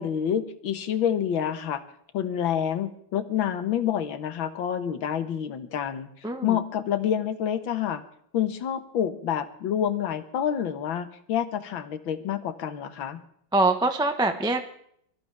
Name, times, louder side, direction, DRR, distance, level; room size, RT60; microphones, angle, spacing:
voice 1, 0.0-1.8 2.1-8.0 8.3-13.2, left 9 dB, 75° left, 10 dB, 1.9 m, -28 dB
voice 2, 6.2-6.6 13.5-14.6, right 2 dB, 5° right, 6 dB, 0.6 m, -23 dB
23.5 x 14.0 x 3.4 m, 0.67 s
omnidirectional pair, 2.2 m